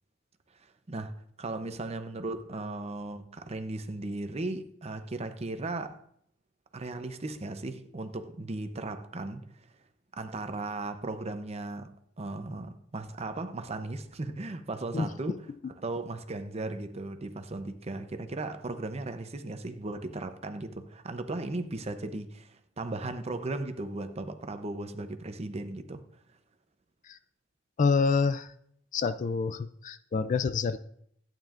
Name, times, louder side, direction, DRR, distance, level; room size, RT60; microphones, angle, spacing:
voice 1, 1.4-6.0 6.7-9.5 10.2-11.9 12.2-15.4 15.8-26.0, right 2 dB, 35° right, 0.7 m, -36 dB
voice 2, 27.8-28.5 28.9-30.8, left 5 dB, 40° left, 0.4 m, -27 dB
12.0 x 9.1 x 2.5 m
head